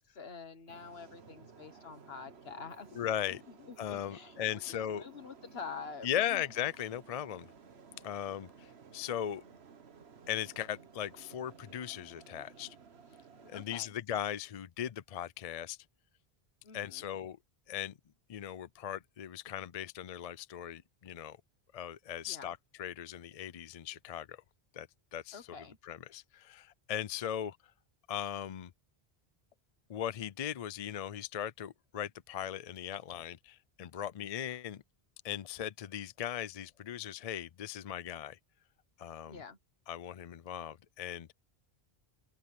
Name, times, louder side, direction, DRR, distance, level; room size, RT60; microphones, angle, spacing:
voice 1, 0.0-3.0 3.2-6.4 13.5-13.9 16.6-17.1 22.2-22.5 25.3-25.8 39.2-39.6, left 5 dB, 70° left, 1.6 m, -47 dB
sound 1, 0.7-13.7, right 5 dB, 80° right, 1.5 m, -56 dB
voice 2, 2.9-3.4 3.8-5.0 6.0-7.5 8.0-9.4 10.3-12.8 13.4-15.8 16.7-17.4 17.7-18.0 18.3-21.4 21.7-24.4 24.7-25.4 25.8-27.6 28.1-28.7 29.9-34.8 35.2-38.4 39.0-39.4 39.9-41.3, left 10 dB, 45° left, 0.5 m, -38 dB
open air
omnidirectional pair, 1.1 m